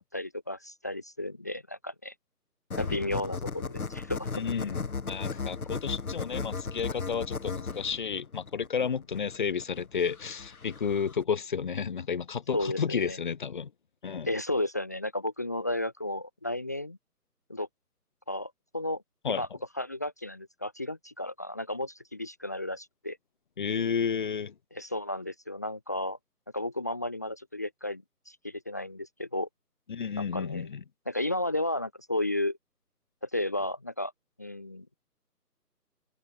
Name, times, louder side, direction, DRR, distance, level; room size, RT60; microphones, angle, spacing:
voice 1, 0.0-2.1 2.8-4.3 12.5-13.2 14.3-17.0 17.5-17.7 18.3-19.0 19.3-19.5 19.8-23.2 24.7-26.2 26.5-29.5 30.2-30.7 31.1-32.6 33.2-34.1 34.4-34.9, left 1 dB, 10° left, 1.1 m, -33 dB
sound 1, 2.7-11.2, left 4 dB, 60° left, 4.2 m, -36 dB
voice 2, 4.3-4.8 5.0-13.7 14.0-14.3 19.2-19.4 23.6-24.5 29.9-30.8, left 6 dB, 30° left, 3.2 m, -31 dB
hypercardioid pair, 170°, 47 cm